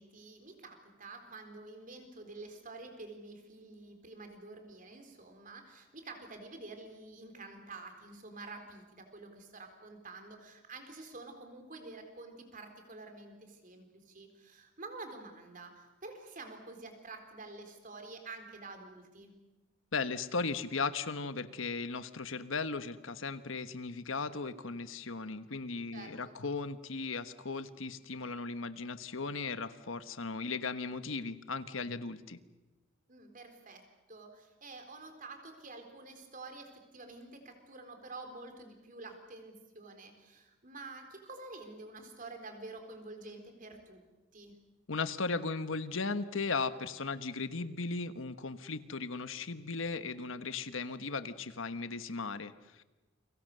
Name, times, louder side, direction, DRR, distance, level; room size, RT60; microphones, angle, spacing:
voice 1, 0.0-19.4 25.9-26.4 33.1-44.0 44.3-44.6, right 3 dB, 45° right, 5 dB, 4.1 m, -49 dB
voice 2, 19.9-32.4 44.9-52.8, left 4 dB, 90° left, 11 dB, 1.3 m, -37 dB
29.5 x 24.0 x 6.8 m, 1.1 s
head